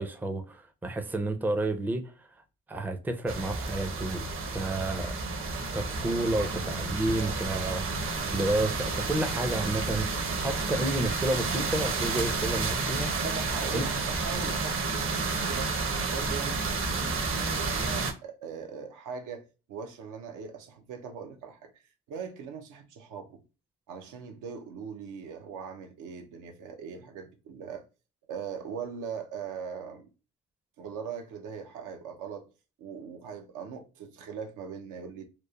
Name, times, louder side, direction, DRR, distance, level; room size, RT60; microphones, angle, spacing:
voice 1, 0.0-2.3 2.7-4.2 4.5-5.1 5.7-8.0 8.3-13.1 13.7-13.8, right 2 dB, 5° right, 0.4 m, -30 dB
sound 1, 3.3-18.1, right 3 dB, 45° right, 0.7 m, -31 dB
voice 2, 13.2-15.7 16.0-21.8 22.1-23.4 23.9-27.8 28.3-30.1 30.8-32.5 32.8-35.3, right 6 dB, 85° right, 0.6 m, -40 dB
3.0 x 2.0 x 2.2 m
cardioid pair, 90°, 30 cm